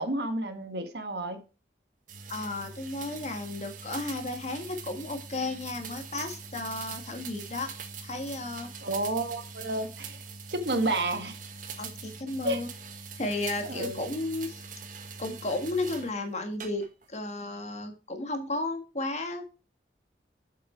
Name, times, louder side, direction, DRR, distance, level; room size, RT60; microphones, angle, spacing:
voice 1, 0.0-1.4 8.8-10.2 10.5-11.4 12.4-12.6 13.6-14.0, right 2 dB, 65° right, 7 dB, 1.6 m, -30 dB
sound 1, 2.1-16.1 16.6-17.1, right 5 dB, 50° right, 1.4 m, -43 dB
voice 2, 2.3-7.7 8.0-8.7 11.8-12.7 13.2-14.6 15.2-19.5, left 2 dB, 40° left, 6 dB, 1.7 m, -33 dB
7.6 x 7.3 x 4.5 m, 0.33 s
head